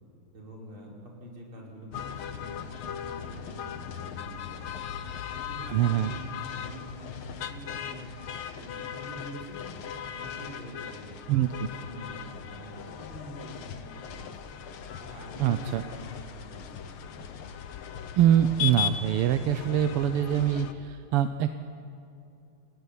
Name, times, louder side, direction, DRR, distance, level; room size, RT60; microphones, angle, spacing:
voice 1, 0.3-4.9 5.3-8.1 8.5-9.8 10.1-11.4 11.8-14.5 15.0-17.3, equal, 65° right, -2 dB, 5.9 m, -45 dB
sound 1, 1.9-20.7, left 8 dB, 75° left, 2.0 m, -38 dB
voice 2, 5.7-6.1 11.3-11.7 15.4-15.8 18.1-21.6, right 10 dB, 90° right, 9 dB, 1.8 m, -24 dB
29.5 x 18.5 x 10.0 m, 2.6 s
omnidirectional pair, 2.4 m